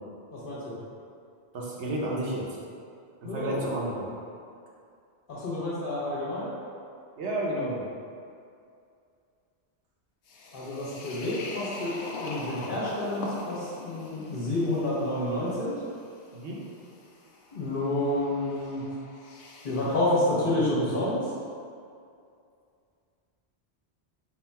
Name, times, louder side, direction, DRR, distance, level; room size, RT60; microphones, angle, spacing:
voice 1, 0.3-0.8 3.2-3.6 5.3-6.5 10.5-15.8 17.5-18.8 19.6-21.2, left 1 dB, 55° left, -8 dB, 1.2 m, -29 dB
voice 2, 1.5-2.5 3.2-4.1 7.2-7.9 16.3-16.6, right 1 dB, 80° right, -4 dB, 1.0 m, -31 dB
sound 1, 10.3-20.1, left 2 dB, 85° left, 0.9 m, -42 dB
4.0 x 2.3 x 4.1 m, 2.4 s
omnidirectional pair, 1.1 m